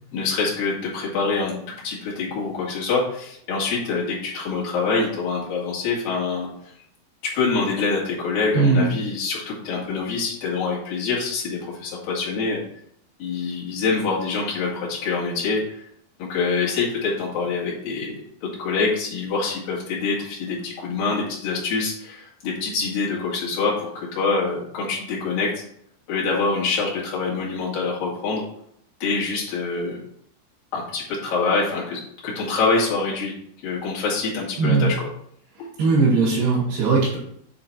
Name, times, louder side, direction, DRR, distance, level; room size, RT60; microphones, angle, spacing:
voice 1, 0.1-6.7 7.2-12.6 13.2-15.8 16.2-25.5 26.1-28.5 29.0-30.0 30.7-33.3 33.6-35.1 35.6-35.7, left 4 dB, 70° left, -5 dB, 3.8 m, -25 dB
voice 2, 8.5-8.9 34.6-34.9 35.8-37.2, right 4 dB, 85° right, -7 dB, 4.0 m, -19 dB
9.2 x 3.9 x 4.4 m, 0.69 s
omnidirectional pair, 4.3 m